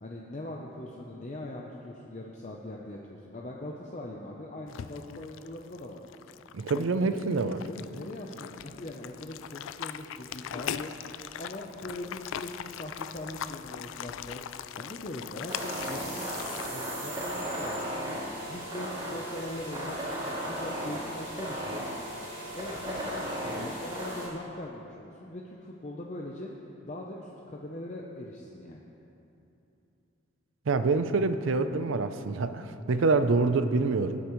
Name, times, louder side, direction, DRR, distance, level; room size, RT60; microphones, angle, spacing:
voice 1, 0.0-6.0 6.7-7.3 7.6-10.9 11.4-14.4 14.8-16.3 16.7-18.2 18.5-20.0 20.4-21.9 22.5-26.5 26.8-28.8, left 1 dB, 35° left, -1 dB, 0.6 m, -41 dB
sound 1, 4.7-16.7, left 9 dB, 75° left, 0.3 m, -40 dB
voice 2, 6.5-7.6 30.7-34.2, right 3 dB, 75° right, 11 dB, 0.5 m, -26 dB
sound 2, 15.5-24.3, equal, 25° right, 2.4 m, -35 dB
18.5 x 8.4 x 3.1 m, 2.9 s
head